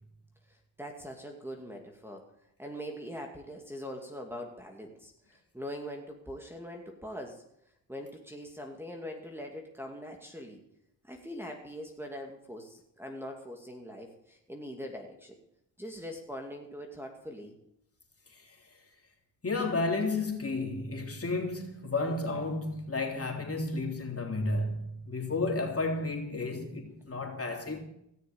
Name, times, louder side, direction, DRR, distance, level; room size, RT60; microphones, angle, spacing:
voice 1, 0.5-2.3 2.6-7.4 7.9-10.6 11.0-15.3 15.8-17.5, equal, 5° right, 2.4 m, -42 dB
voice 2, 19.4-27.8, left 3 dB, 30° left, 3.5 m, -32 dB
17.0 x 6.6 x 8.7 m
cardioid pair, 65°, 44 cm